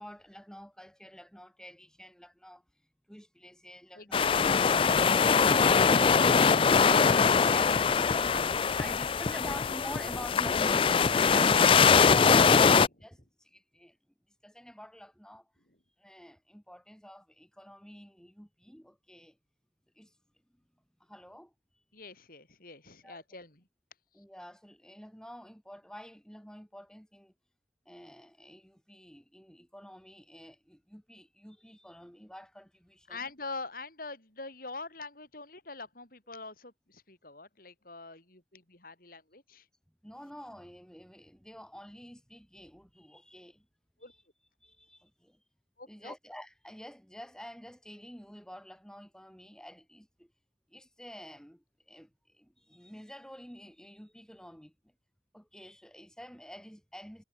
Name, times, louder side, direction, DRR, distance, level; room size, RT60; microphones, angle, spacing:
voice 1, 0.0-2.6 3.1-6.6 7.5-8.4 8.8-14.0 14.4-15.5 16.0-19.4 20.0-20.1 21.0-21.5 23.0-23.2 24.1-27.3 27.9-33.2 40.0-43.7 44.1-44.2 44.6-45.4 45.9-50.3 50.7-54.7 55.3-57.2, equal, 5° left, 5.6 m, -48 dB
voice 2, 3.9-5.0 6.2-8.4 8.9-9.0 9.4-9.6 12.8-13.1 15.7-15.8 21.9-23.7 33.1-39.7 44.0-44.1 45.8-46.1, left 3 dB, 55° left, 7.7 m, -44 dB
sound 1, 4.1-12.9, left 6 dB, 30° left, 0.3 m, -22 dB
head